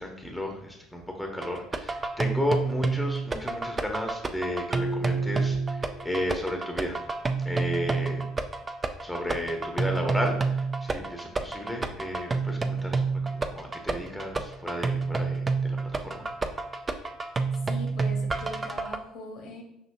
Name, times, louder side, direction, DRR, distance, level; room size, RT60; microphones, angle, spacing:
voice 1, 0.0-7.0 7.4-8.3 9.0-16.3, left 1 dB, 5° left, 2 dB, 0.8 m, -33 dB
sound 1, 1.4-19.0, right 4 dB, 25° right, 0.4 m, -29 dB
Marimba xylophone, 4.7-6.5, equal, 60° right, 1.1 m, -38 dB
voice 2, 17.6-19.6, left 1 dB, 55° left, 1 dB, 1.0 m, -41 dB
5.7 x 2.8 x 2.6 m, 0.85 s
figure-of-eight pair, 55°, 0 cm